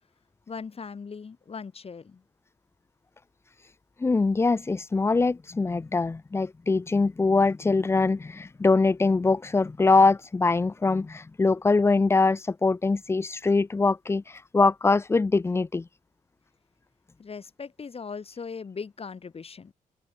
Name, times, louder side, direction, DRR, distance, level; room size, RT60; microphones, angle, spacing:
voice 1, 0.5-2.2 17.2-19.7, left 5 dB, 45° left, 2.9 m, -39 dB
voice 2, 4.0-15.9, left 3 dB, 20° left, 0.4 m, -23 dB
open air
cardioid pair, 75°, 14 cm